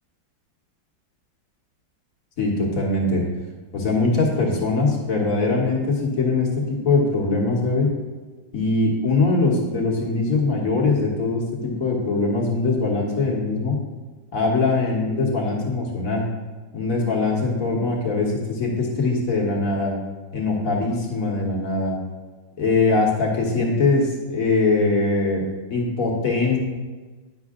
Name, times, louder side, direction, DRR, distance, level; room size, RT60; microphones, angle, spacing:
voice 1, 2.4-3.2 3.7-7.9 8.5-13.7 14.3-16.2 16.7-19.9 20.3-21.9 22.6-25.4 25.7-26.6, left 3 dB, 50° left, -2 dB, 1.5 m, -22 dB
9.9 x 5.6 x 3.6 m, 1.3 s
omnidirectional pair, 2.1 m